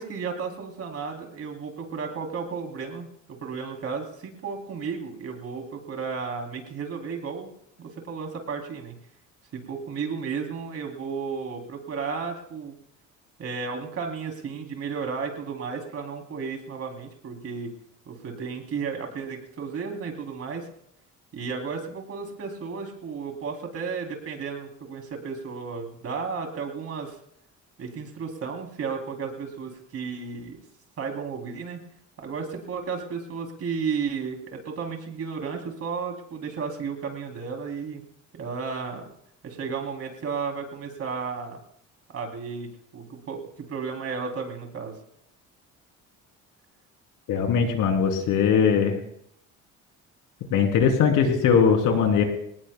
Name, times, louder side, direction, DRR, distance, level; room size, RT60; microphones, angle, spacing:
voice 1, 0.0-7.5 7.8-8.9 9.5-12.7 13.4-17.7 18.1-20.7 21.3-27.1 27.8-30.6 31.0-31.8 32.2-38.0 38.3-39.1 39.4-41.6 42.1-45.0, right 5 dB, 50° right, 3 dB, 3.2 m, -33 dB
voice 2, 47.3-48.9 50.5-52.2, left 6 dB, 80° left, 3 dB, 3.3 m, -20 dB
26.5 x 18.5 x 2.3 m, 0.70 s
cardioid pair, 135°, 31 cm